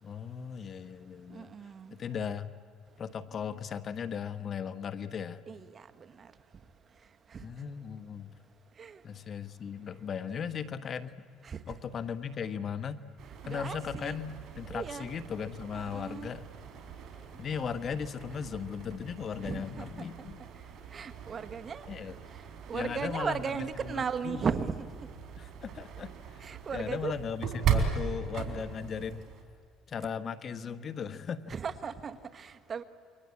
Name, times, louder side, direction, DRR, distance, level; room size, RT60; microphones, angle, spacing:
voice 1, 0.0-1.5 1.9-2.5 3.0-5.4 7.4-8.3 9.0-11.3 11.7-13.0 13.4-16.5 17.4-20.4 21.9-22.2 22.7-23.6 23.9-24.4 25.4-26.1 26.4-29.2 29.9-31.5, left 7 dB, 45° left, 1.2 m, -37 dB
voice 2, 1.3-1.9 5.5-5.9 6.2-6.3 7.3-7.5 8.8-9.0 10.4-10.5 11.4-11.6 13.4-14.2 14.7-15.1 15.7-16.3 19.4-20.0 20.9-21.9 22.7-24.9 26.4-27.1 31.5-32.8, right 6 dB, 35° right, 1.4 m, -36 dB
sound 1, 13.2-29.4, right 6 dB, 55° right, 4.3 m, -38 dB
29.0 x 23.5 x 8.5 m
cardioid pair, 100°, 0 cm